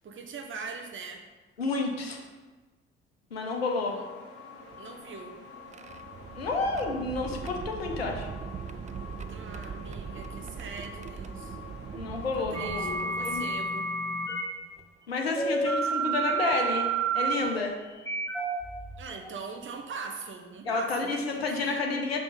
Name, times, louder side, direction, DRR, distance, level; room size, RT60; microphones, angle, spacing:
voice 1, 0.0-1.2 3.9-4.0 4.8-5.4 9.3-11.6 12.4-13.9 19.0-21.9, right 5 dB, 40° right, 3 dB, 1.2 m, -41 dB
voice 2, 1.6-2.2 3.3-4.0 6.3-8.3 11.9-13.4 15.1-16.9 17.1-17.7 20.7-22.2, left 3 dB, 90° left, 2 dB, 0.7 m, -30 dB
sound 1, 3.5-13.5, left 4 dB, 50° left, 1.7 m, -47 dB
sound 2, 4.6-13.9 14.8-14.9 16.3-16.6 17.3-17.5 19.1-19.2 19.6-19.9, right 6 dB, 25° right, 0.4 m, -41 dB
sound 3, 12.5-14.4 15.4-19.4, right 4 dB, 10° left, 1.5 m, -30 dB
5.6 x 5.0 x 5.3 m, 1.3 s
figure-of-eight pair, 45°, 30 cm